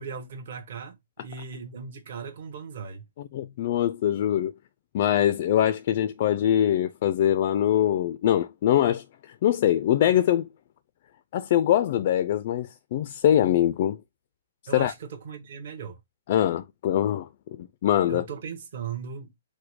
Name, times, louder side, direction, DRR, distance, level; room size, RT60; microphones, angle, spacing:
voice 1, 0.0-3.0 14.7-16.0 18.1-19.3, right 6 dB, 50° right, 1.1 m, -38 dB
voice 2, 3.3-4.5 4.9-9.0 9.4-10.5 11.3-14.0 14.7-14.9 16.3-18.2, left 11 dB, 35° left, 0.3 m, -23 dB
4.9 x 2.1 x 4.6 m
hypercardioid pair, 170°, 0 cm